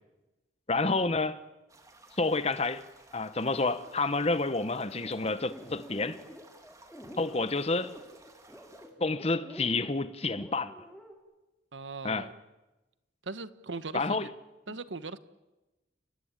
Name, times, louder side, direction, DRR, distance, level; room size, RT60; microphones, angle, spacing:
voice 1, 0.7-1.4 2.2-2.8 3.1-6.2 7.2-7.9 9.0-10.7 12.0-12.3 13.9-14.3, left 3 dB, 35° left, 1.1 m, -29 dB
sound 1, 1.7-8.9, right 2 dB, 20° right, 2.7 m, -57 dB
sound 2, 3.5-11.1, equal, 5° left, 3.1 m, -49 dB
voice 2, 11.7-12.3 13.2-14.3 14.7-15.2, right 3 dB, 85° right, 1.2 m, -39 dB
29.5 x 18.0 x 9.0 m
head